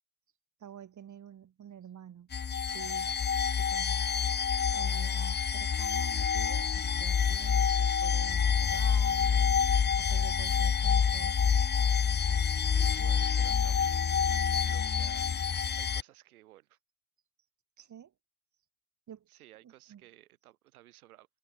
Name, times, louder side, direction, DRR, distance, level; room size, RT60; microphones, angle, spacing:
voice 1, 0.6-2.3 2.6-3.2 3.6-9.6 9.9-11.5 12.3-12.7 17.8-18.1 19.1-19.3 19.6-20.0, right 9 dB, 40° right, 3.2 m, -49 dB
sound 1, 2.3-16.0, left 7 dB, 25° left, 1.0 m, -27 dB
voice 2, 12.6-14.2 14.6-15.2 15.8-16.8 19.3-21.3, right 15 dB, 85° right, 7.7 m, -56 dB
hypercardioid pair, 70°, 43 cm